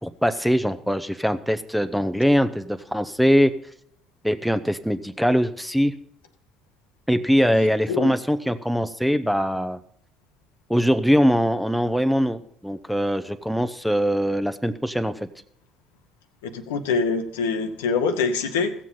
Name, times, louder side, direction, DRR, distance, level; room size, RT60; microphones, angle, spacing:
voice 1, 0.0-3.5 4.2-5.9 7.1-9.8 10.7-15.2, equal, ahead, 10 dB, 0.8 m, -22 dB
voice 2, 16.4-18.7, left 4 dB, 70° left, 7 dB, 0.9 m, -24 dB
15.5 x 7.5 x 5.6 m, 0.67 s
figure-of-eight pair, 55°, 0 cm